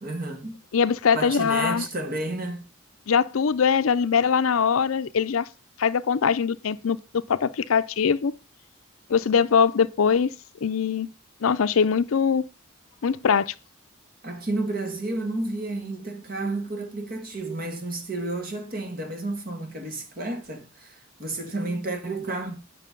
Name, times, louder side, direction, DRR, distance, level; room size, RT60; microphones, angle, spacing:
voice 1, 0.0-0.6 1.1-2.6 14.2-22.6, right 2 dB, 45° right, 1.9 m, -31 dB
voice 2, 0.7-1.8 3.1-5.5 5.8-8.3 9.1-10.3 10.6-11.1 11.4-12.5 13.0-13.5, left 6 dB, 80° left, 0.5 m, -22 dB
9.4 x 6.0 x 5.3 m
head